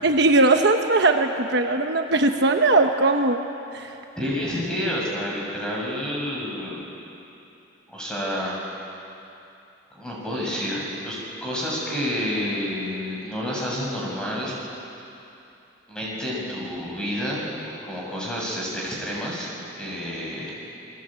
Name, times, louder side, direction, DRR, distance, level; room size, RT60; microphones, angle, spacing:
voice 1, 0.0-3.4 3.7-3.9, right 2 dB, 55° right, 4 dB, 1.2 m, -19 dB
voice 2, 4.2-6.9 7.9-8.6 10.0-14.5 15.9-19.5 19.8-20.5, equal, 5° left, -4 dB, 7.2 m, -29 dB
29.0 x 22.5 x 9.0 m, 2.8 s
head